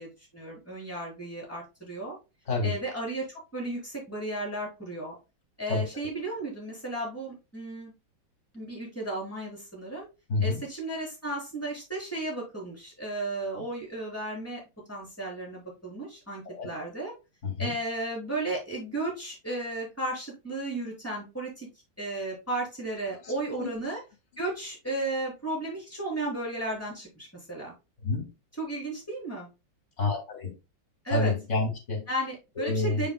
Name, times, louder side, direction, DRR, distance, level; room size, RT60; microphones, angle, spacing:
voice 1, 0.0-2.1 2.6-5.1 5.6-7.9 8.5-10.1 10.4-14.6 14.9-17.1 17.6-21.7 22.0-24.0 24.4-27.7 28.6-29.5 31.0-31.3 32.1-33.1, right 2 dB, 5° left, 4.1 m, -34 dB
voice 2, 10.3-10.6 16.4-16.7 17.4-17.7 23.2-23.7 28.0-28.3 30.0-30.5 31.1-32.1 32.6-33.1, left 3 dB, 40° left, 2.6 m, -29 dB
7.1 x 6.8 x 2.3 m
omnidirectional pair, 2.1 m